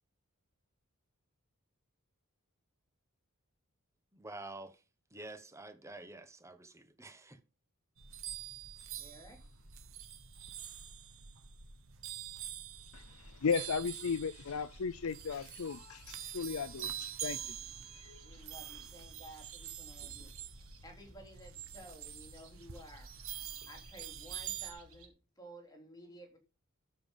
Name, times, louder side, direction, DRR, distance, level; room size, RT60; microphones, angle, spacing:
voice 1, 4.1-4.8 5.1-7.4, right 2 dB, 15° right, 1.1 m, -48 dB
sound 1, 8.0-24.7, right 10 dB, 65° right, 1.3 m, -46 dB
voice 2, 9.0-9.4 18.2-20.3 20.5-23.1 23.4-26.4, right 1 dB, 20° left, 3.4 m, -54 dB
sound 2, 12.7-25.1, right 2 dB, 90° right, 3.1 m, -60 dB
voice 3, 12.9-17.6 17.9-18.3, left 5 dB, 70° left, 0.5 m, -36 dB
13.0 x 5.5 x 5.3 m
head